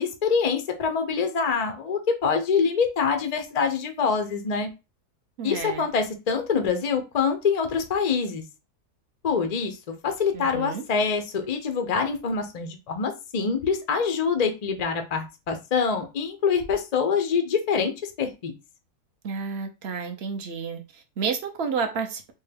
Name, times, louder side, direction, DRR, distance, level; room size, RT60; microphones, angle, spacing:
voice 1, 0.0-4.7 5.4-8.4 9.2-18.5, left 5 dB, 80° left, 0.3 m, -25 dB
voice 2, 5.4-5.9 10.3-10.8 19.2-22.3, right 5 dB, 60° right, 0.6 m, -31 dB
4.4 x 2.2 x 3.3 m
omnidirectional pair, 1.6 m